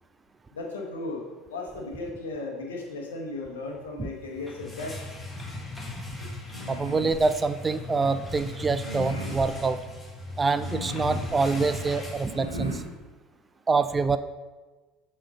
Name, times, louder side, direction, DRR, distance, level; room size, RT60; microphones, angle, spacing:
voice 1, 0.5-5.0 6.2-6.3, left 2 dB, 70° left, 1 dB, 1.0 m, -36 dB
sound 1, 4.2-12.9, left 2 dB, 10° left, 1.3 m, -38 dB
sound 2, 6.5-7.2 8.8-9.5 10.6-11.3 12.2-12.9, left 1 dB, 90° right, 0.9 m, -37 dB
voice 2, 6.7-9.8 10.4-12.8 13.7-14.2, right 4 dB, 20° right, 12 dB, 0.3 m, -25 dB
7.3 x 4.3 x 3.8 m, 1.3 s
figure-of-eight pair, 65°, 0 cm